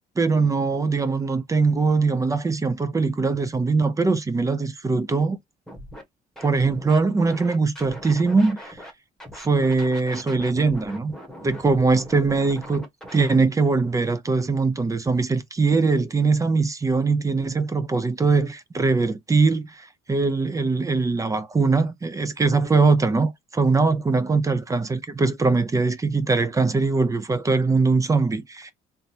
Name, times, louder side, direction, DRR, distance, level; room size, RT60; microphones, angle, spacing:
voice 1, 0.0-5.4 6.4-8.8 9.4-11.1 11.4-12.9 13.1-28.7, right 4 dB, 20° right, 0.6 m, -21 dB
Scratching (performance technique), 5.7-6.0 6.4-8.9 9.2-13.4, equal, 5° left, 1.3 m, -40 dB
3.6 x 2.6 x 2.8 m
cardioid pair, 110°, 17 cm